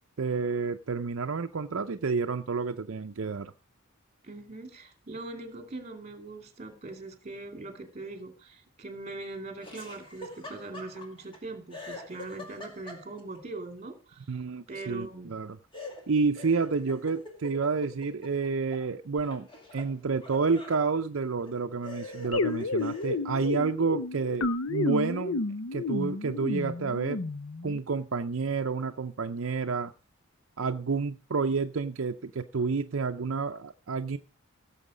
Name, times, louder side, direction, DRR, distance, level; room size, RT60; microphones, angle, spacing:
voice 1, 0.2-3.5 14.3-15.6 16.1-25.4 25.7-27.2 27.6-29.9 30.6-34.2, right 4 dB, 65° right, 0.6 m, -29 dB
voice 2, 4.2-14.3 14.7-15.3, right 2 dB, 30° right, 2.5 m, -41 dB
Laughter, 9.6-11.4 11.7-13.4 15.7-18.9 19.2-20.8 21.4-21.5 21.8-23.2, left 1 dB, 25° left, 2.4 m, -45 dB
sound 1, 22.3-27.8, left 3 dB, 75° left, 0.7 m, -31 dB
16.5 x 7.1 x 5.0 m
head